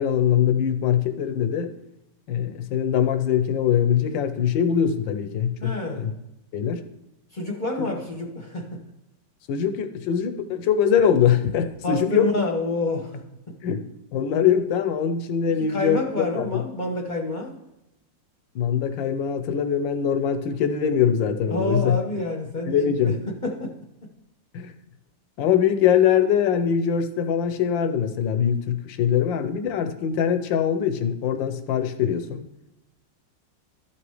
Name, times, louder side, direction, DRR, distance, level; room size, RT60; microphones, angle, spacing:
voice 1, 0.0-1.7 2.3-6.1 6.5-6.8 9.5-12.3 13.6-13.8 14.1-16.6 18.5-22.0 22.7-23.2 24.5-24.7 25.4-32.5, left 8 dB, 85° left, 8 dB, 1.4 m, -22 dB
voice 2, 5.6-6.1 7.3-8.8 11.8-13.5 15.6-17.6 21.5-23.1 23.4-23.7, left 2 dB, 35° left, 1 dB, 0.8 m, -28 dB
13.0 x 6.0 x 3.2 m, 0.88 s
omnidirectional pair, 2.0 m